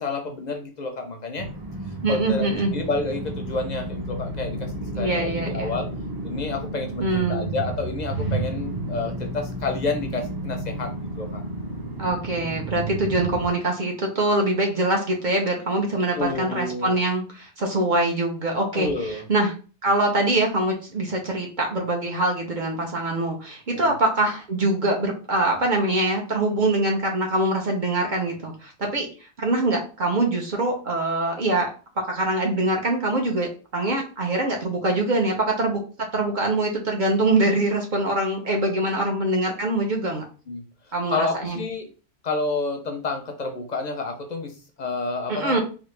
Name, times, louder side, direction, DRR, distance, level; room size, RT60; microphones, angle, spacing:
voice 1, 0.0-1.5 2.1-5.9 6.2-11.4 15.9-17.0 18.7-19.2 23.7-23.9 40.5-40.6 41.1-41.9 42.2-45.6, left 3 dB, 55° left, 4 dB, 0.6 m, -29 dB
sound 1, 1.4-13.5, right 2 dB, 30° right, 0.5 m, -32 dB
voice 2, 2.0-2.7 4.9-5.8 7.0-7.5 12.0-18.9 19.3-19.5 19.8-29.1 29.4-31.7 32.0-35.8 36.1-40.2 40.9-41.6 45.3-45.6, right 2 dB, 50° right, 1 dB, 0.8 m, -24 dB
3.3 x 2.4 x 3.2 m, 0.36 s
omnidirectional pair, 1.1 m